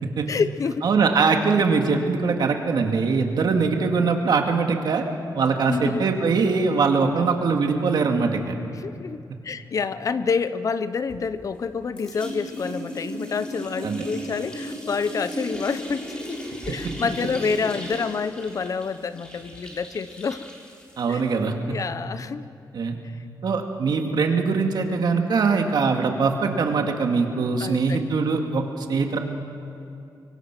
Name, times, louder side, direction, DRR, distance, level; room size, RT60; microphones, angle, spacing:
voice 1, 0.3-0.9 5.7-6.1 7.2-7.4 8.7-9.2 9.4-16.4 16.7-20.4 21.1-21.2 21.7-22.4 27.6-28.0, left 5 dB, 45° left, 13 dB, 0.8 m, -28 dB
voice 2, 0.8-5.0 5.3-8.6 13.8-14.0 16.7-16.8 21.0-21.8 22.7-23.0 23.4-29.2, right 4 dB, 70° right, 3 dB, 2.2 m, -22 dB
sound 1, 11.1-11.7 12.0-21.3, equal, 10° left, 3.8 m, -36 dB
25.0 x 23.5 x 6.1 m, 2.6 s
wide cardioid pair, 160°, 8 cm